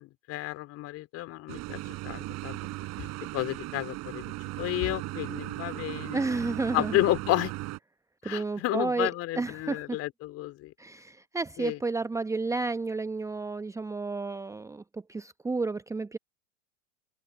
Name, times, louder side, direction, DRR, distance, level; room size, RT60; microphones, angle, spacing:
voice 1, 0.0-2.6 3.0-3.1 3.3-6.2 6.7-7.5 8.2-10.7 11.6-11.8, left 17 dB, 40° left, 3.7 m, -31 dB
sound 1, 1.5-7.8, right 20 dB, 45° right, 7.5 m, -37 dB
voice 2, 6.1-7.0 8.2-9.1 9.3-10.0 10.8-16.2, right 3 dB, 10° right, 1.0 m, -31 dB
figure-of-eight pair, 90°, 37 cm